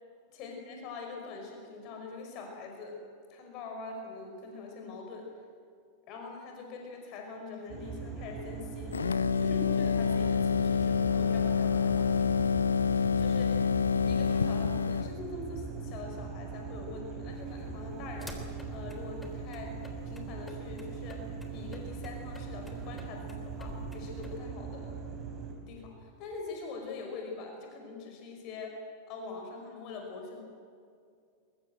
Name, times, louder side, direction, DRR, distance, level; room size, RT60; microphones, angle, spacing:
voice 1, 0.3-3.0 3.3-5.3 6.1-9.0 9.3-12.1 12.8-13.6 14.0-19.8 20.0-24.9 25.7-28.8 29.1-30.4, left 3 dB, 40° left, 2 dB, 5.5 m, -43 dB
sound 1, 7.7-25.5, right 5 dB, 30° right, 5.5 m, -41 dB
sound 2, 8.9-15.2, left 6 dB, 75° left, 0.6 m, -27 dB
sound 3, 17.3-24.4, left 2 dB, 10° left, 3.5 m, -50 dB
23.0 x 22.0 x 7.9 m, 2.3 s
figure-of-eight pair, 90°, 0 cm